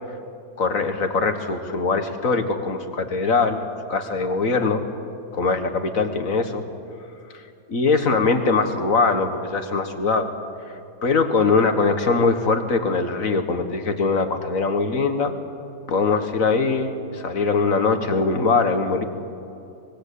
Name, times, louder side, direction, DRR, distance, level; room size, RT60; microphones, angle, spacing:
voice 1, 0.6-4.8 5.3-6.6 7.3-7.4 7.7-10.3 10.7-15.3 15.9-19.0, left 4 dB, 55° left, 7 dB, 2.0 m, -22 dB
24.0 x 22.0 x 8.4 m, 2.6 s
omnidirectional pair, 1.7 m